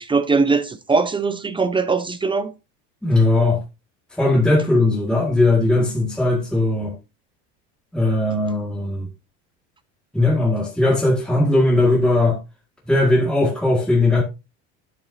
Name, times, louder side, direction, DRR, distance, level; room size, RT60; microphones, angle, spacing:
voice 1, 0.0-2.5, right 4 dB, 15° right, 0.6 m, -20 dB
voice 2, 3.0-3.6 4.2-6.9 7.9-9.1 10.1-12.4 12.9-14.2, left 2 dB, 5° left, 1.8 m, -18 dB
10.0 x 7.0 x 2.6 m
supercardioid pair, 130°, 34 cm